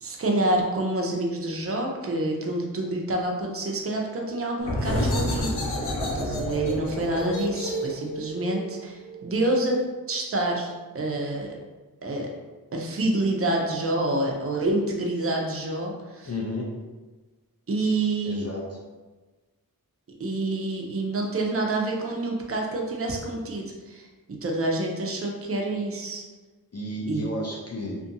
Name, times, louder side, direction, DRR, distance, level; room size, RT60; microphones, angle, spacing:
voice 1, 0.0-5.9 6.1-9.8 10.1-11.5 12.0-12.3 12.7-16.3 17.7-18.5 20.2-26.2 27.1-27.2, right 2 dB, 40° right, 0 dB, 0.5 m, -27 dB
sound 1, 4.6-10.0, left 1 dB, 85° left, 0.6 m, -30 dB
voice 2, 16.2-16.7 18.3-18.6 26.7-28.0, left 1 dB, 40° left, -3 dB, 0.5 m, -32 dB
2.6 x 2.5 x 2.6 m, 1.2 s
wide cardioid pair, 55°, 38 cm